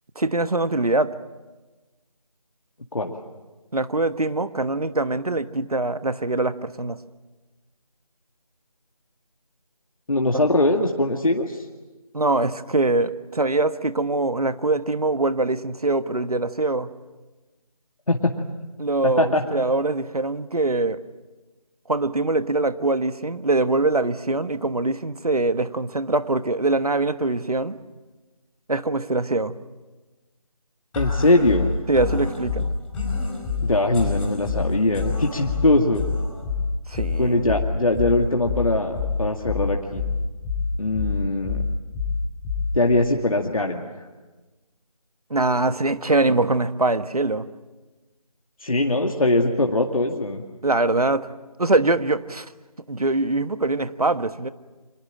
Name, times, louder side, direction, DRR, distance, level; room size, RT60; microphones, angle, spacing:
voice 1, 0.1-1.1 3.7-7.0 12.1-16.9 18.8-21.0 21.9-27.8 28.7-29.5 31.9-32.7 36.9-37.3 45.3-47.5 50.6-51.3 51.6-52.5 52.9-54.5, right 2 dB, 75° right, 12 dB, 1.4 m, -23 dB
voice 2, 10.1-11.6 18.1-18.3 19.0-19.4 31.0-31.7 33.6-36.0 37.2-40.0 40.8-41.6 42.7-43.9 48.6-50.4, left 2 dB, 65° left, 2 dB, 2.1 m, -21 dB
sound 1, 30.9-42.9, left 4 dB, 5° left, 2.5 m, -27 dB
25.5 x 19.5 x 9.0 m, 1.2 s
figure-of-eight pair, 165°, 19 cm